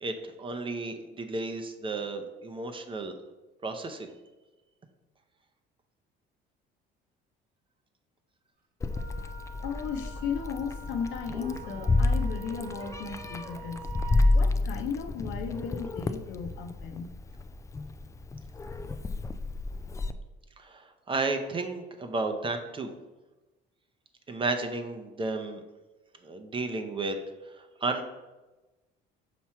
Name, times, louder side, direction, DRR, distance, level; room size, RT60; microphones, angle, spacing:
voice 1, 0.0-3.1 3.6-4.1 20.6-22.9 24.3-25.6 26.2-27.1 27.6-28.0, right 3 dB, 25° right, 6 dB, 0.7 m, -33 dB
Meow, 8.8-20.1, left 2 dB, 15° left, 0.3 m, -30 dB
Wind instrument woodwind instrument, 8.9-14.4, right 5 dB, 50° right, 0.9 m, -46 dB
voice 2, 9.6-17.1, left 6 dB, 70° left, 6 dB, 0.8 m, -36 dB
5.8 x 3.1 x 5.6 m, 1.1 s
cardioid pair, 115°, 20 cm